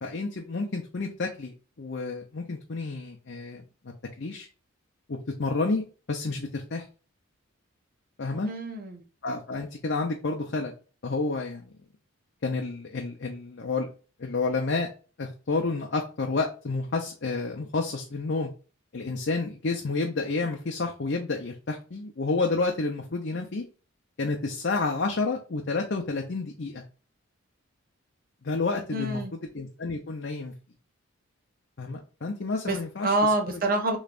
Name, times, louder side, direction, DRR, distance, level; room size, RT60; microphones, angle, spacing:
voice 1, 0.0-3.6 4.2-4.5 5.1-6.8 8.2-8.5 9.2-10.7 11.0-11.7 12.4-13.9 14.2-14.9 15.2-18.5 18.9-23.6 24.2-26.8 28.4-30.5 31.8-33.3, left 3 dB, 55° left, 0.6 m, -30 dB
voice 2, 8.3-9.0 28.9-29.3 32.6-32.8 33.0-34.0, right 2 dB, 45° right, 1.0 m, -26 dB
6.7 x 3.2 x 2.5 m
head